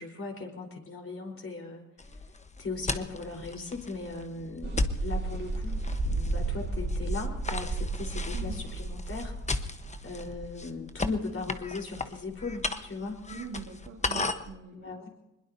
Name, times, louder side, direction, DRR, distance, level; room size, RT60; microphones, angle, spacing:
voice 1, 0.0-1.8 2.6-9.3 10.0-13.2 14.7-15.1, left 3 dB, 45° left, 2 dB, 4.5 m, -38 dB
sound 1, 2.0-14.6, left 3 dB, 20° left, 1.2 m, -37 dB
sound 2, 4.6-11.3, right 2 dB, 35° right, 4.4 m, -33 dB
voice 2, 13.3-15.1, right 5 dB, 85° right, 0 dB, 2.7 m, -43 dB
23.0 x 21.0 x 2.8 m, 0.97 s
cardioid pair, 75°, 31 cm